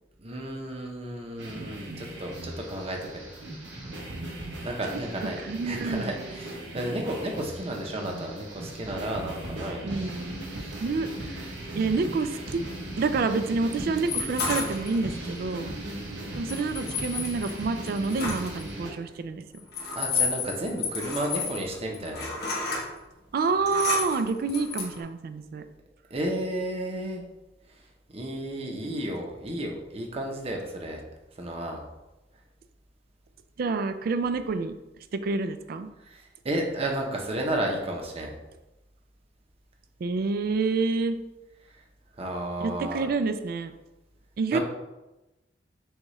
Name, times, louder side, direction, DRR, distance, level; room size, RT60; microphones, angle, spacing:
voice 1, 0.2-3.3 4.6-9.9 10.6-10.8 20.0-22.3 26.1-27.2 28.1-31.0 31.4-31.8 36.1-38.3 42.2-43.1 44.5-44.6, right 1 dB, 35° right, 1 dB, 0.7 m, -32 dB
sound 1, 1.4-18.9, right 1 dB, 80° right, 1.0 m, -38 dB
voice 2, 5.4-6.1 9.8-10.5 10.8-11.4 11.8-12.6 13.0-15.7 16.4-19.4 23.3-25.6 33.6-34.7 35.1-35.9 40.0-41.2 42.6-43.7 44.4-44.6, right 4 dB, 55° right, 10 dB, 0.3 m, -28 dB
sound 2, 14.1-15.3 16.5-18.6 19.5-22.8 23.4-25.0, left 4 dB, 60° left, 1.2 m, -31 dB
6.3 x 2.4 x 3.1 m, 1.0 s
head